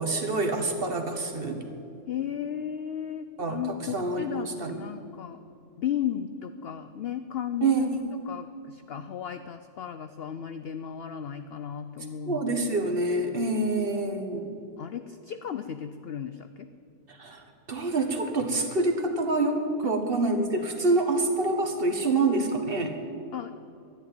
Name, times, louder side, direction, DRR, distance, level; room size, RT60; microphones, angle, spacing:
voice 1, 0.0-1.6 3.4-4.8 7.6-7.9 12.3-14.5 17.1-22.9, right 2 dB, 40° right, 5 dB, 1.5 m, -27 dB
voice 2, 2.1-5.4 5.8-7.9 8.2-12.6 14.8-16.7 19.8-19.9 23.3-23.5, left 9 dB, 80° left, 10 dB, 0.5 m, -35 dB
13.0 x 10.5 x 8.9 m, 2.6 s
omnidirectional pair, 1.7 m